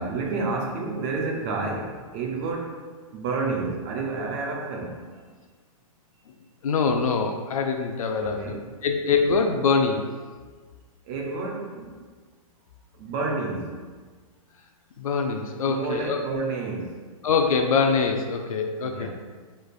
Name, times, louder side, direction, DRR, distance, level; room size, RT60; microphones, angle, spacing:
voice 1, 0.0-2.8 3.1-5.4 8.1-8.7 11.0-12.0 12.9-13.8 15.7-17.0 18.8-19.1, right 3 dB, 15° right, 0 dB, 0.4 m, -30 dB
voice 2, 6.6-10.0 15.0-16.2 17.2-19.1, left 5 dB, 70° left, 4 dB, 0.5 m, -24 dB
6.1 x 3.3 x 2.3 m, 1.5 s
hypercardioid pair, 170°, 18 cm